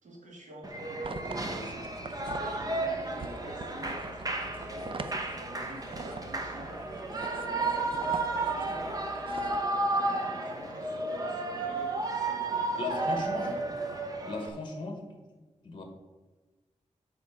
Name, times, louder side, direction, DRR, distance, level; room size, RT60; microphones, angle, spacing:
voice 1, 0.0-6.7 7.3-13.7, right 1 dB, 85° right, 0 dB, 2.1 m, -48 dB
Shout / Cheering, 0.6-14.5, right 2 dB, 30° right, 1.0 m, -33 dB
sound 1, 1.0-9.6, right 4 dB, 45° right, 0.6 m, -44 dB
voice 2, 12.8-13.6 14.3-15.2 15.6-15.8, left 3 dB, 40° left, 4 dB, 1.2 m, -36 dB
9.5 x 3.7 x 7.0 m, 1.2 s
wide cardioid pair, 140°, 12 cm